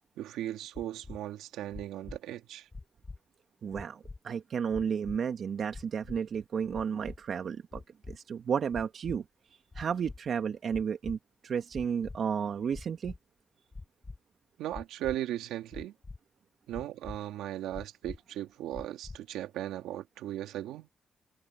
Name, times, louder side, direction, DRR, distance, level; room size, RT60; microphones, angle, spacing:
voice 1, 0.0-2.7 14.6-15.9 16.7-20.9, right 13 dB, 90° right, 2.7 m, -37 dB
sound 1, 0.7-1.2 1.7-2.2 2.7-3.2 3.7-4.2 4.7-5.2 5.7-6.2 6.7-7.2 7.7-8.2 8.7-9.2 9.7-10.2 10.7-11.2 11.7-12.2 12.7-13.2 13.7-14.2 14.7-15.2 15.7-16.2 16.7-17.2 17.7-18.2 18.7-19.2, left 3 dB, 30° left, 7.0 m, -43 dB
voice 2, 3.6-7.8 8.1-9.2 9.8-11.2 11.4-13.1, right 7 dB, 65° right, 1.8 m, -32 dB
supercardioid pair, 55°, 0 cm